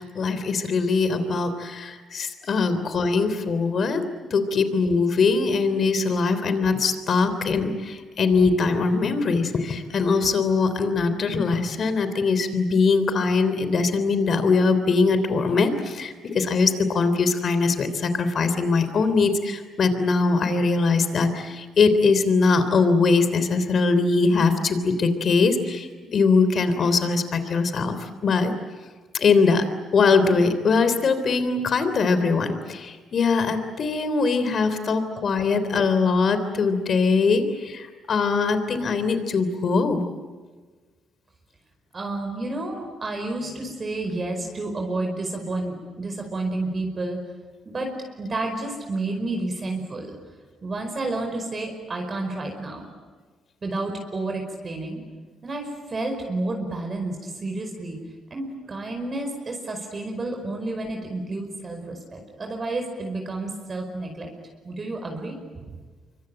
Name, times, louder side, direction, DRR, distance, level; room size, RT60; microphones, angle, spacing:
voice 1, 0.0-4.0 4.3-28.5 29.1-29.6 29.9-40.0, left 4 dB, 55° left, 10 dB, 3.4 m, -22 dB
voice 2, 41.9-47.2 47.6-50.2 50.6-52.9 53.6-55.0 55.4-58.0 58.3-64.3 64.6-65.8, right 2 dB, 35° right, 3 dB, 5.1 m, -30 dB
26.5 x 24.0 x 9.0 m, 1.4 s
cardioid pair, 90°, 0 cm